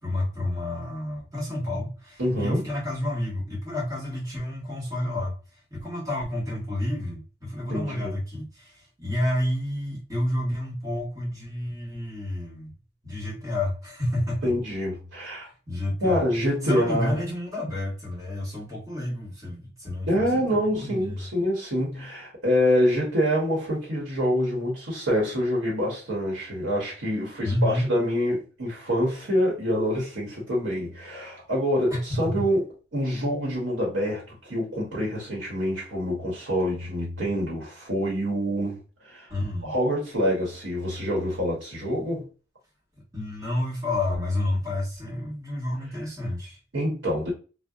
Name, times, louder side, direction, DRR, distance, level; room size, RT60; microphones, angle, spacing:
voice 1, 0.0-5.3 5.7-12.7 13.0-14.5 15.7-16.3 16.6-21.3 27.4-27.9 31.9-32.4 39.3-39.7 43.1-46.6, left 1 dB, 20° right, 1.2 m, -30 dB
voice 2, 2.2-2.7 7.7-8.2 14.4-15.5 16.0-17.2 20.1-32.6 32.9-39.3 39.6-42.2 46.7-47.3, equal, 85° right, 0.9 m, -26 dB
2.7 x 2.0 x 2.3 m
head